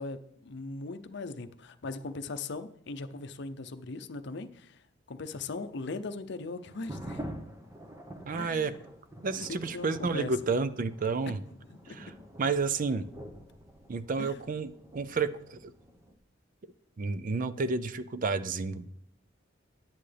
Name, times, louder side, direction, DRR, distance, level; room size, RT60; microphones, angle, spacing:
voice 1, 0.0-4.8 5.1-7.3 8.4-8.8 9.5-10.3 11.3-12.0 14.2-14.4, left 3 dB, 65° left, 10 dB, 0.6 m, -39 dB
sound 1, 6.7-16.1, right 1 dB, 15° right, 1.0 m, -46 dB
voice 2, 8.2-8.8 9.2-11.4 11.9-12.1 12.4-13.0 13.9-15.7 17.0-18.9, right 4 dB, 45° right, 13 dB, 0.5 m, -31 dB
11.0 x 9.9 x 3.4 m, 0.73 s
head